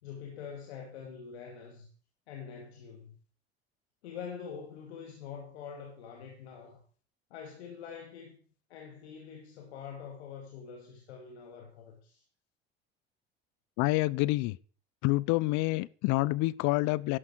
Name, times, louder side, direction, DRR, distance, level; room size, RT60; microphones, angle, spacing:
voice 1, 0.0-1.9 2.3-3.2 4.0-6.8 7.3-8.4 8.7-12.2, left 7 dB, 80° left, 2.4 m, -45 dB
voice 2, 13.8-14.6 15.0-17.2, left 21 dB, 60° left, 0.7 m, -27 dB
12.5 x 11.0 x 4.5 m
hypercardioid pair, 75°, 32 cm